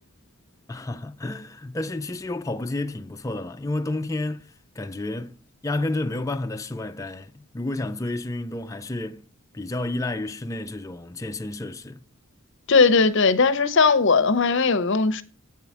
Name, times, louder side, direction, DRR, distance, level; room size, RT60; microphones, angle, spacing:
voice 1, 0.7-9.3 9.5-12.0, left 2 dB, 15° left, 0.4 m, -31 dB
voice 2, 12.7-15.2, left 4 dB, 55° left, 0.7 m, -18 dB
7.8 x 4.7 x 7.1 m
head